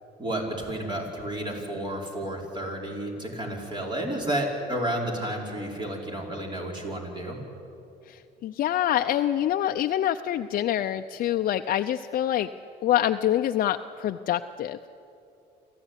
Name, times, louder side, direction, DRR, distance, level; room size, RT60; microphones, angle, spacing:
voice 1, 0.2-7.4, right 1 dB, 25° right, 0 dB, 5.2 m, -31 dB
voice 2, 8.1-12.5 12.8-14.8, left 11 dB, 60° left, 6 dB, 0.6 m, -26 dB
26.5 x 15.0 x 10.0 m, 2.7 s
cardioid pair, 110°, 17 cm